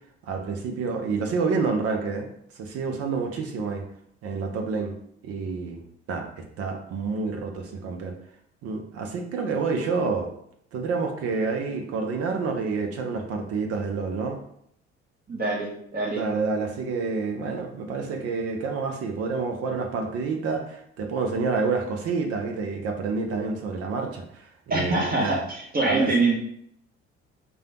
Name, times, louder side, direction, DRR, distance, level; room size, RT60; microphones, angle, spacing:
voice 1, 0.3-2.3 2.6-3.8 4.2-4.9 5.2-5.8 6.1-8.2 8.6-10.3 10.7-14.4 16.2-25.4 25.8-26.1, right 4 dB, 45° right, 3 dB, 0.7 m, -28 dB
voice 2, 15.3-16.2 24.7-26.4, right 2 dB, 25° right, -2 dB, 1.3 m, -24 dB
5.0 x 2.3 x 2.9 m, 0.69 s
figure-of-eight pair, 50°, 34 cm